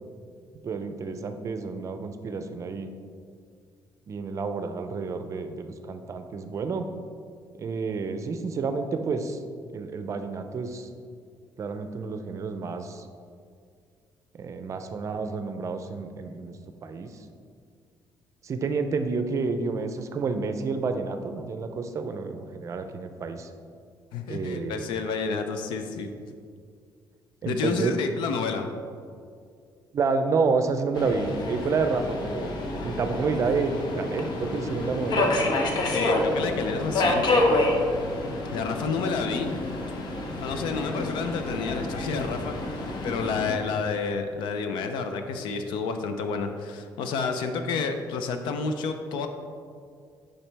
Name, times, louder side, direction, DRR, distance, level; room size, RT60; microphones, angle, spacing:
voice 1, 0.6-2.9 4.1-6.9 7.6-9.4 9.7-10.9 11.6-13.1 14.4-16.5 16.8-17.1 18.4-23.5 24.3-24.8 27.4-27.9 29.9-32.6 32.8-35.3, right 4 dB, 40° right, 8 dB, 0.5 m, -29 dB
voice 2, 24.1-26.1 27.5-28.7 35.9-37.4 38.5-39.5 40.4-42.5 43.0-49.3, left 4 dB, 90° left, 7 dB, 0.6 m, -29 dB
Subway metro underground, 30.9-43.6, left 2 dB, 65° left, 0.9 m, -28 dB
7.0 x 5.4 x 3.4 m, 2.2 s
cardioid pair, 115°, 8 cm